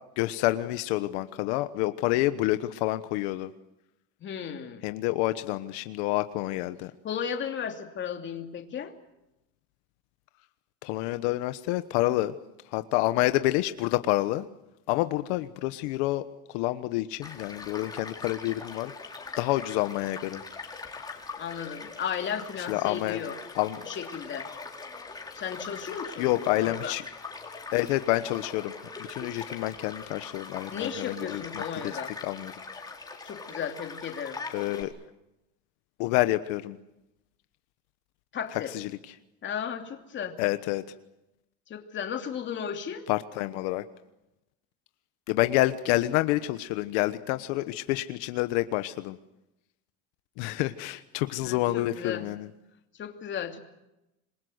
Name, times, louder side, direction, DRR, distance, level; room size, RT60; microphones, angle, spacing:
voice 1, 0.2-3.5 4.8-6.9 10.8-12.3 12.7-14.5 14.9-16.2 16.5-20.4 22.7-23.2 23.5-23.8 26.2-27.0 27.7-32.5 34.5-34.9 36.0-36.8 38.7-38.9 40.4-40.8 43.1-43.8 45.3-49.2 50.4-52.5, left 17 dB, 85° left, 11 dB, 1.2 m, -28 dB
voice 2, 4.2-4.9 7.0-8.9 21.4-23.4 23.8-24.5 25.3-27.0 30.7-32.1 33.2-34.4 38.3-38.7 39.4-40.4 41.7-43.0 51.4-52.2 53.0-53.6, left 8 dB, 35° left, 5 dB, 2.9 m, -35 dB
Child speech kid speaking / Stream / Car passing by, 17.2-34.8, left 4 dB, 10° left, 4.1 m, -42 dB
27.0 x 23.0 x 8.0 m, 0.92 s
cardioid pair, 150°, 33 cm